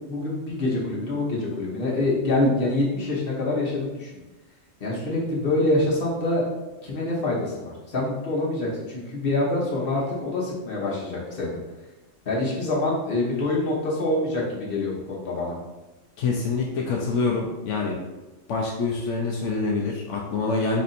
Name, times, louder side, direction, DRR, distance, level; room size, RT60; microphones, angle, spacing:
voice 1, 0.1-4.2 4.8-6.4 6.8-11.6 12.2-15.5, left 2 dB, 50° left, -4 dB, 1.3 m, -25 dB
voice 2, 16.2-18.0 18.5-20.8, left 4 dB, 80° left, -1 dB, 0.9 m, -26 dB
4.2 x 2.6 x 4.1 m, 1.1 s
omnidirectional pair, 1.3 m